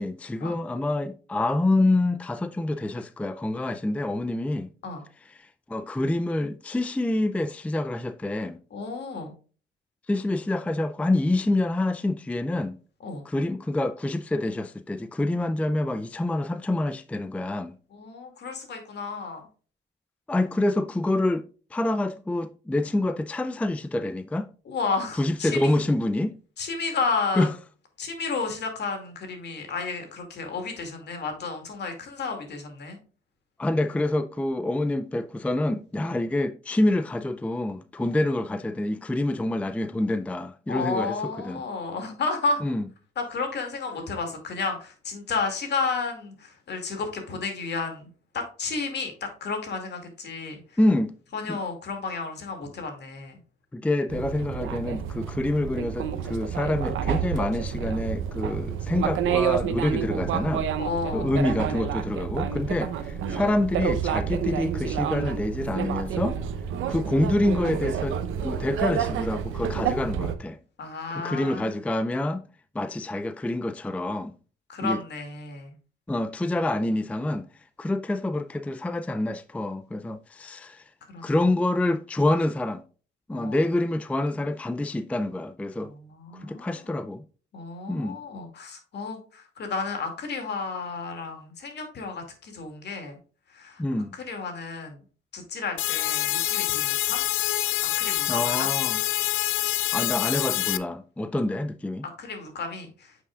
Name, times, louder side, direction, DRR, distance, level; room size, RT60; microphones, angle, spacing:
voice 1, 0.0-4.7 5.4-8.6 10.1-12.8 13.3-17.8 20.3-21.5 21.7-24.5 25.1-26.4 27.3-27.5 33.6-41.6 42.6-42.8 50.8-51.1 51.5-51.6 53.7-60.7 61.1-66.4 66.9-68.2 68.4-70.6 71.1-72.4 72.7-74.4 74.8-75.0 76.1-77.5 77.8-80.8 81.2-82.8 83.3-85.9 86.4-87.2 87.9-88.2 93.8-94.2 98.3-99.0 99.9-102.0, left 1 dB, 5° left, 0.4 m, -27 dB
voice 2, 8.7-9.3 13.0-13.2 17.9-19.4 24.7-25.8 26.6-27.5 28.0-33.0 36.0-36.1 38.0-38.2 40.7-42.6 43.2-50.8 51.3-53.4 60.8-61.3 70.8-71.7 74.7-75.7 81.1-81.3 83.3-83.6 85.8-86.7 87.5-93.2 93.5-93.8 94.1-95.0 95.3-97.2 98.0-98.7 102.2-103.2, left 4 dB, 60° left, 2.4 m, -32 dB
sound 1, 54.1-70.4, right 8 dB, 80° right, 0.8 m, -29 dB
sound 2, 95.8-100.8, left 16 dB, 90° left, 0.4 m, -26 dB
8.9 x 6.1 x 2.4 m
cardioid pair, 90°, 20 cm